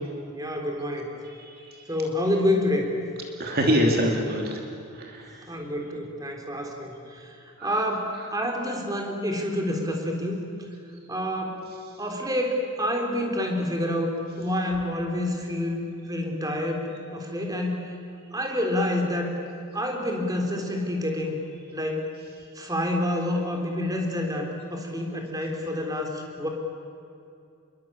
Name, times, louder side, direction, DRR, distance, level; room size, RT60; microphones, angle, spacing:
voice 1, 0.3-1.1 1.9-2.9 5.5-7.3 7.6-10.4 11.1-11.6 12.0-15.8 16.1-17.9 18.3-19.3 19.7-21.4 21.7-22.1 22.6-26.5, left 1 dB, 15° right, 2 dB, 3.7 m, -28 dB
voice 2, 1.2-2.0 3.4-4.6 4.9-5.5 7.6-7.8 11.9-12.0, equal, 45° right, 1 dB, 2.9 m, -26 dB
28.5 x 22.5 x 8.8 m, 2.6 s
head